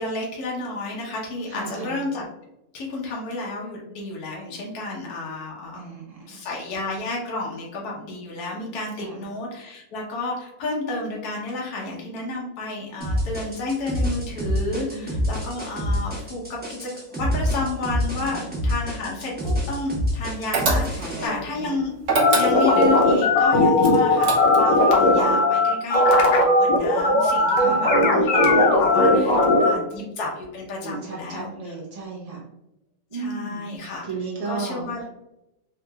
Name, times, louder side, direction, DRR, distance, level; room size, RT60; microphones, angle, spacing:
voice 1, 0.0-2.2 2.7-5.9 6.3-21.9 22.3-29.4 29.6-31.5 33.1-34.0 34.4-35.0, left 2 dB, 65° left, -2 dB, 1.2 m, -31 dB
voice 2, 1.5-1.9 5.7-6.4 8.9-9.2 14.8-15.2 18.2-18.4 21.0-21.7 27.6-27.9 29.2-29.9 30.8-32.4 33.1-33.6 34.0-35.1, right 3 dB, 85° right, -4 dB, 0.3 m, -35 dB
sound 1, 13.0-21.3, equal, 10° right, 0.6 m, -26 dB
sound 2, 20.5-21.2 22.0-22.9 23.8-24.8, right 3 dB, 60° right, 0.8 m, -24 dB
sound 3, 22.2-29.7, left 2 dB, 90° left, 1.4 m, -18 dB
3.6 x 2.9 x 2.3 m, 0.88 s
omnidirectional pair, 1.9 m